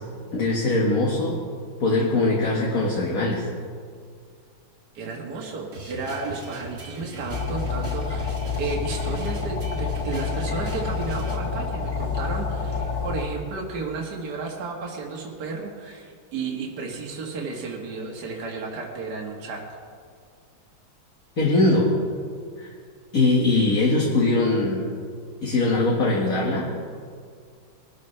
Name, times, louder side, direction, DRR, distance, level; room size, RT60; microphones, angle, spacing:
voice 1, 0.3-1.4 1.8-3.4 21.4-21.9 22.6-22.7 23.1-24.9 25.4-26.6, left 2 dB, 45° left, -4 dB, 2.1 m, -21 dB
voice 2, 4.9-19.6, right 4 dB, 55° right, -2 dB, 2.0 m, -33 dB
sound 1, 5.7-11.4, right 2 dB, 40° right, 2.1 m, -39 dB
sound 2, 7.3-13.3, left 5 dB, 20° left, 1.7 m, -28 dB
22.0 x 12.5 x 3.3 m, 2.1 s
omnidirectional pair, 2.1 m